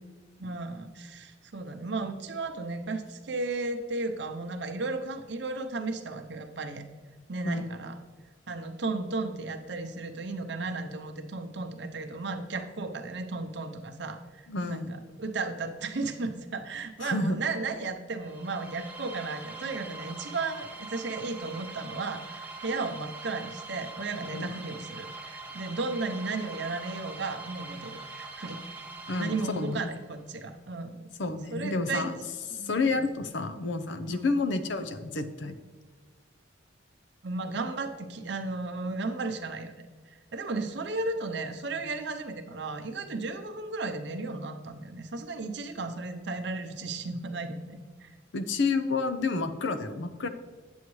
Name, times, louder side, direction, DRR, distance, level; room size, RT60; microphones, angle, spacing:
voice 1, 0.4-6.8 7.3-7.9 8.5-28.6 29.2-31.0 31.5-32.1 32.5-33.1 34.1-34.2 37.2-39.7 40.1-48.1, right 3 dB, 60° right, 6 dB, 0.8 m, -34 dB
voice 2, 14.5-15.0 17.0-17.4 24.3-24.4 29.1-29.9 31.2-32.1 32.5-35.6 48.3-50.3, left 3 dB, 70° left, 9 dB, 0.6 m, -30 dB
sound 1, 18.2-30.1, right 3 dB, 10° right, 0.8 m, -43 dB
9.3 x 7.2 x 3.2 m, 1.4 s
head